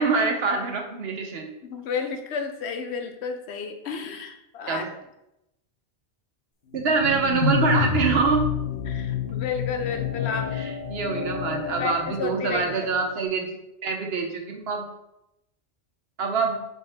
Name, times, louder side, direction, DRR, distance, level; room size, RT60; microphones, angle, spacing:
voice 1, 0.0-1.5 4.7-4.9 6.7-8.5 10.5-13.6 13.8-14.8 16.2-16.6, right 4 dB, 70° right, 3 dB, 1.2 m, -25 dB
voice 2, 1.6-4.8 8.8-10.5 11.8-12.9, left 6 dB, 80° left, 6 dB, 1.0 m, -32 dB
sound 1, 6.7-13.1, left 5 dB, 55° left, 1.0 m, -29 dB
5.9 x 5.5 x 3.5 m, 0.87 s
omnidirectional pair, 1.1 m